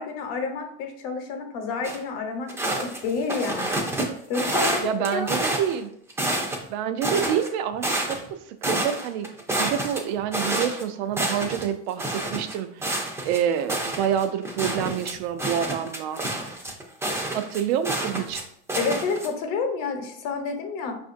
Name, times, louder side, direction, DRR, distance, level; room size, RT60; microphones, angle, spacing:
voice 1, 0.0-3.9 4.3-5.3 18.8-21.0, left 4 dB, 65° left, 5 dB, 0.9 m, -29 dB
sound 1, 1.8-2.0 2.5-4.0 4.3-5.8 6.1-6.7 7.0-8.3 8.6-10.8 11.1-11.6 12.0-18.4 18.7-19.3, right 1 dB, 10° right, 0.4 m, -28 dB
voice 2, 4.8-5.9 6.7-16.2 17.3-18.4, right 9 dB, 70° right, 9 dB, 0.5 m, -28 dB
5.0 x 2.5 x 2.5 m, 0.68 s
supercardioid pair, 130°, 34 cm